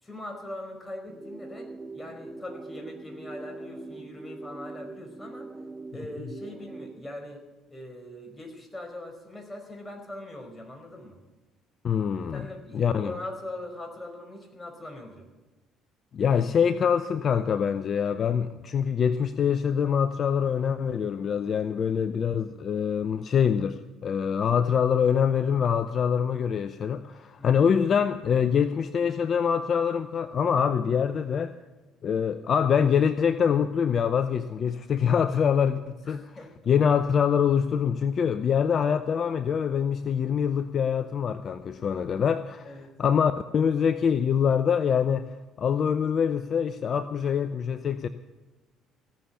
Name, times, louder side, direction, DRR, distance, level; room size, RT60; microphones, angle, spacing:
voice 1, 0.0-5.5 5.9-7.4 7.7-11.2 12.3-15.3 27.4-27.7 36.0-36.5 42.6-42.9, left 1 dB, 15° left, 3 dB, 4.9 m, -41 dB
sound 1, 1.1-7.1, right 3 dB, 15° right, 1.0 m, -42 dB
voice 2, 11.8-12.5 12.7-13.1 16.1-31.5 32.0-36.3 36.7-45.3 45.6-48.1, left 7 dB, 50° left, 12 dB, 0.6 m, -25 dB
17.0 x 7.1 x 10.0 m, 1.2 s
hypercardioid pair, 60°, 0 cm